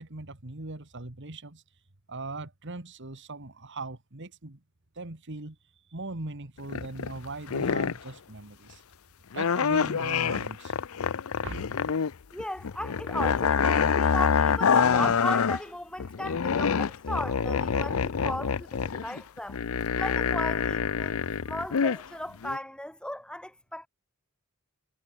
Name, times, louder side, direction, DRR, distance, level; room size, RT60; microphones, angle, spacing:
voice 1, 0.0-1.6 2.1-4.6 5.0-5.6 5.9-8.8 9.3-10.7 11.4-11.7 15.0-15.1, right 2 dB, 60° right, 2.1 m, -39 dB
sound 1, 6.6-7.2 7.5-8.1 9.3-12.1 12.4-15.6 16.0-22.0 22.4-22.6, left 6 dB, 70° left, 0.6 m, -26 dB
voice 2, 12.3-19.6 19.9-23.9, left 1 dB, 5° left, 2.7 m, -36 dB
head